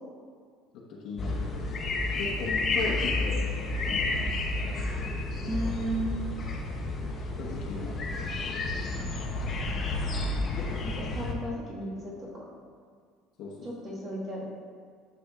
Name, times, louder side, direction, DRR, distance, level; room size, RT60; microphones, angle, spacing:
voice 1, 0.7-1.6 2.2-4.1 7.4-8.3 13.4-13.7, left 3 dB, 50° left, -4 dB, 1.0 m, -38 dB
sound 1, 1.2-11.3, left 2 dB, 25° left, 0.7 m, -31 dB
voice 2, 5.5-6.1 10.8-12.4 13.6-14.5, right 1 dB, 25° right, -5 dB, 1.6 m, -34 dB
9.6 x 6.9 x 2.4 m, 2.1 s
cardioid pair, 175°, 0 cm